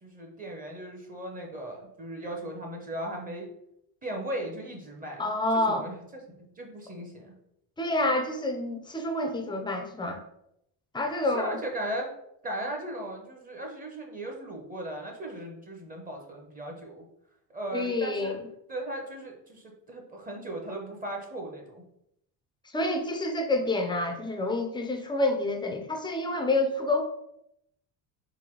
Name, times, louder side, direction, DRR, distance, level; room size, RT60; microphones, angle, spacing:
voice 1, 0.0-3.5 4.0-7.3 11.3-12.1 12.4-17.0 17.5-18.4 18.7-21.8, right 1 dB, 20° right, 1 dB, 0.7 m, -37 dB
voice 2, 5.2-5.8 7.8-10.2 10.9-11.6 17.7-18.4 22.7-27.0, left 2 dB, 10° left, 4 dB, 0.4 m, -28 dB
3.9 x 2.6 x 4.5 m, 0.78 s
cardioid pair, 145°, 41 cm